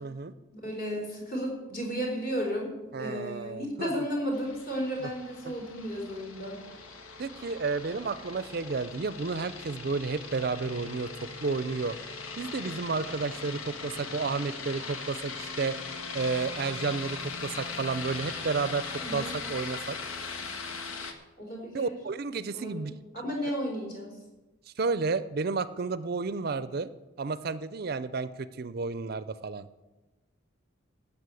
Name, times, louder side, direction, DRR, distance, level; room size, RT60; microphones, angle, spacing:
voice 1, 0.0-0.3 2.9-4.0 5.5-5.6 7.2-12.0 12.4-15.8 16.1-20.0 21.7-22.9 24.8-26.9 27.2-29.7, right 4 dB, 50° right, 15 dB, 0.5 m, -32 dB
voice 2, 0.5-2.7 3.0-6.6 19.0-19.3 21.4-22.0 22.5-24.2, equal, 50° left, -1 dB, 4.1 m, -33 dB
sound 1, 4.3-21.1, left 4 dB, 90° left, 1.4 m, -40 dB
12.5 x 7.1 x 8.3 m, 1.1 s
head